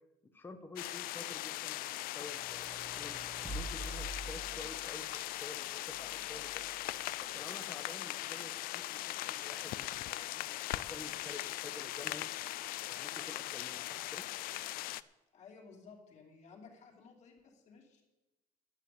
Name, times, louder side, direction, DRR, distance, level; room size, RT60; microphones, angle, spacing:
voice 1, 0.3-6.7 7.2-10.4 10.7-12.3 12.9-14.3, left 3 dB, 10° left, 7 dB, 0.9 m, -50 dB
sound 1, 0.8-15.0, left 16 dB, 60° left, 0.4 m, -40 dB
sound 2, 2.3-5.0 5.9-6.8, right 1 dB, 10° right, 1.0 m, -46 dB
voice 2, 15.3-18.0, left 5 dB, 45° left, 0 dB, 2.8 m, -56 dB
11.5 x 8.1 x 8.3 m, 1.1 s
cardioid pair, 165°, 17 cm